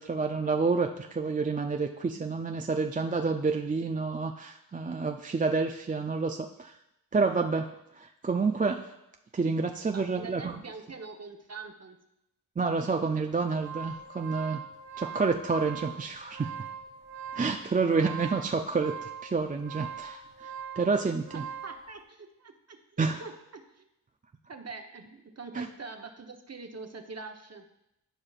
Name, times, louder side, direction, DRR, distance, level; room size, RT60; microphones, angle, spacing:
voice 1, 0.0-6.8 7.1-8.9 9.3-10.6 12.6-14.6 15.0-16.5 17.3-21.4 23.0-23.2 25.5-25.7, right 4 dB, 20° right, 5 dB, 0.4 m, -29 dB
voice 2, 9.9-12.0 21.3-23.9 24.5-27.7, right 4 dB, 40° right, 5 dB, 1.0 m, -44 dB
sound 1, 13.3-21.8, right 7 dB, 80° right, 2.9 m, -41 dB
13.0 x 4.9 x 2.4 m, 0.86 s
cardioid pair, 50°, 41 cm